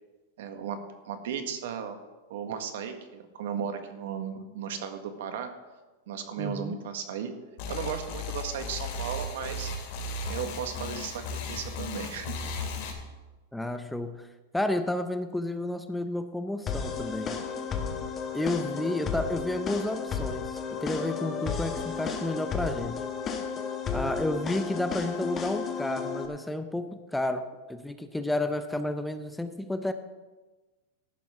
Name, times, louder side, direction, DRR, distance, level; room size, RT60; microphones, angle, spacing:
voice 1, 0.4-0.8 1.0-2.0 2.3-5.5 6.1-7.3 7.7-9.7 10.3-12.3, right 8 dB, 75° right, 7 dB, 1.6 m, -35 dB
voice 2, 6.4-6.8 13.5-14.3 14.5-17.4 18.3-23.0 23.9-29.9, left 1 dB, 5° left, 9 dB, 0.6 m, -31 dB
sound 1, 7.6-12.9, left 3 dB, 55° left, 3.1 m, -35 dB
sound 2, 16.7-26.3, left 6 dB, 25° left, 1.3 m, -33 dB
14.0 x 11.5 x 3.7 m, 1.2 s
supercardioid pair, 140°, 0 cm